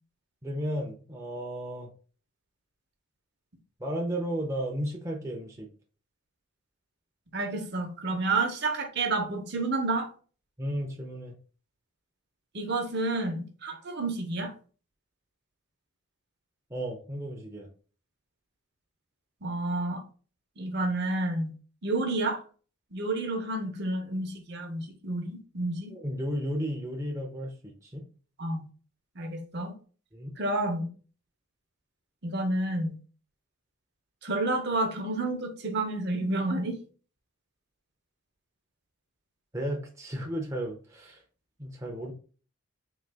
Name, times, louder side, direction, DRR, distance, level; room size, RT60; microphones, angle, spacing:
voice 1, 0.4-1.9 3.8-5.7 10.6-11.3 16.7-17.7 25.9-28.0 30.1-30.3 39.5-41.2 41.6-42.1, equal, 15° right, 0.5 m, -34 dB
voice 2, 7.3-10.1 12.5-14.5 19.4-20.0 20.6-21.5 21.8-22.4 22.9-25.9 28.4-28.6 29.2-29.7 30.4-30.9 32.2-32.9 34.2-36.8, right 2 dB, 50° right, 0.7 m, -30 dB
3.9 x 2.8 x 3.3 m
head